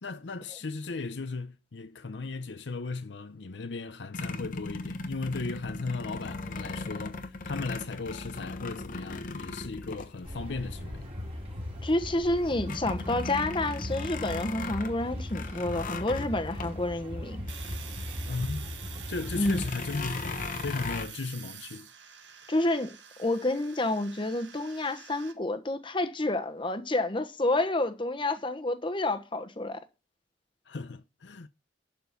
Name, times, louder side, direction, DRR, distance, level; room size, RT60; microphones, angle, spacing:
voice 1, 0.0-11.1 18.3-18.7 19.1-21.9 30.7-31.5, left 3 dB, 75° left, 0.7 m, -36 dB
sound 1, 4.1-10.8 11.4-11.5 11.8-18.5 18.8-18.9 19.4-21.1, left 3 dB, 50° left, 1.2 m, -38 dB
sound 2, 10.2-19.7, left 1 dB, 35° right, 2.8 m, -38 dB
voice 2, 11.8-17.4 19.4-19.6 22.5-29.8, left 2 dB, 30° left, 1.1 m, -29 dB
Domestic sounds home sounds, 17.5-25.3, right 8 dB, 90° right, 1.8 m, -47 dB
11.5 x 4.3 x 6.8 m
head